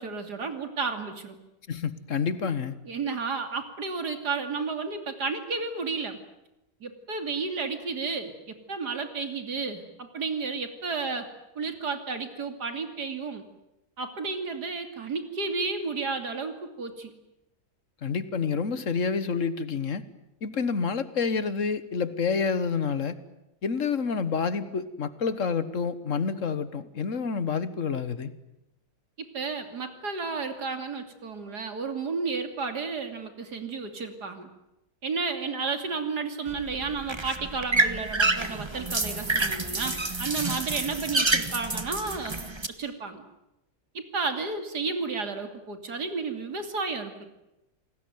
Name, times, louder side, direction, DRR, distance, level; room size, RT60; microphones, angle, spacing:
voice 1, 0.0-1.4 2.8-6.2 6.8-11.3 11.5-13.5 14.0-17.1 29.2-34.5 35.0-42.4 42.8-43.2 43.9-47.3, right 4 dB, 70° right, 7 dB, 3.3 m, -32 dB
voice 2, 1.7-2.7 18.0-20.0 20.4-23.2 23.6-28.3, left 5 dB, 50° left, 14 dB, 1.6 m, -28 dB
sound 1, 36.5-42.7, right 2 dB, 20° right, 1.3 m, -28 dB
28.0 x 19.0 x 9.4 m, 0.91 s
omnidirectional pair, 1.8 m